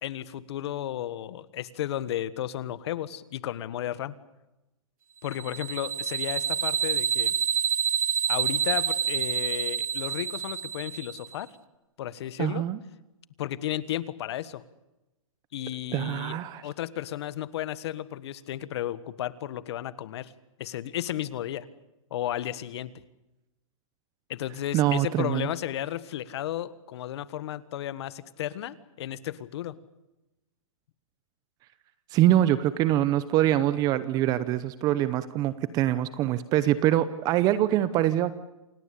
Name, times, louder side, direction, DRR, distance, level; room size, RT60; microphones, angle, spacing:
voice 1, 0.0-4.1 5.2-7.3 8.3-11.5 12.0-12.6 13.4-14.6 15.5-20.3 20.6-21.7 22.1-22.9 24.3-29.7, left 12 dB, 50° left, 17 dB, 1.5 m, -33 dB
sound 1, 5.3-11.3, right 9 dB, 80° right, 1.5 m, -28 dB
voice 2, 12.4-12.8 15.9-16.6 24.7-25.5 32.1-38.4, right 13 dB, 20° right, 15 dB, 0.8 m, -24 dB
28.0 x 18.0 x 8.5 m, 0.97 s
hypercardioid pair, 160°, 17 cm